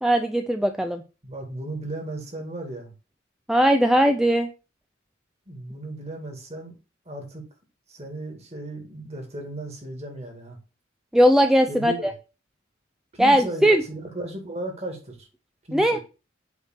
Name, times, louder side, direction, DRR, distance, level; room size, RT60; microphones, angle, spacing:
voice 1, 0.0-1.0 3.5-4.5 11.1-12.1 13.2-13.8 15.7-16.0, equal, ahead, 0.4 m, -19 dB
voice 2, 1.2-2.9 5.5-6.7 7.1-7.4 7.9-10.6 11.7-12.0 13.1-15.3 15.7-16.0, right 1 dB, 30° right, 2.2 m, -35 dB
8.2 x 3.5 x 6.5 m
head